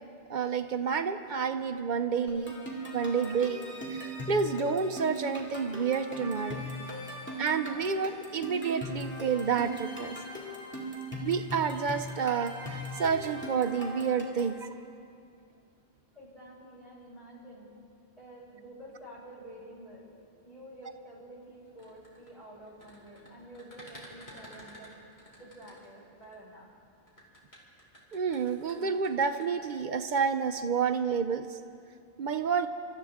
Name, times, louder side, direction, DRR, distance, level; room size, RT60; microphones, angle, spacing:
voice 1, 0.3-2.5 2.9-3.6 3.9-6.7 7.4-10.2 11.2-14.7 28.1-31.6 32.2-32.7, right 6 dB, 55° right, 9 dB, 0.7 m, -29 dB
sound 1, 2.3-14.6, equal, 10° left, 2.2 m, -39 dB
voice 2, 16.1-17.7 18.2-20.0 20.4-24.9 25.4-26.7, right 1 dB, 40° left, -7 dB, 5.3 m, -49 dB
sound 2, 21.7-26.4 27.1-29.7, equal, 90° left, 2.9 m, -52 dB
27.0 x 13.0 x 3.6 m, 2.4 s
omnidirectional pair, 1.1 m